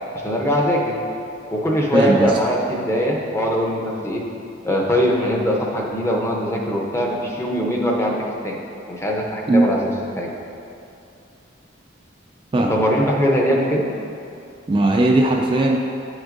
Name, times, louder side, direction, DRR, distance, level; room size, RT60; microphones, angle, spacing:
voice 1, 0.2-1.0 1.5-4.2 4.6-8.2 8.4-8.6 8.9-10.3 12.6-13.9, equal, 15° left, -1 dB, 0.6 m, -21 dB
voice 2, 1.9-2.4 9.5-9.6 12.5-12.8 14.7-15.8, right 2 dB, 25° right, 0 dB, 0.3 m, -17 dB
8.6 x 6.1 x 2.5 m, 2.7 s
head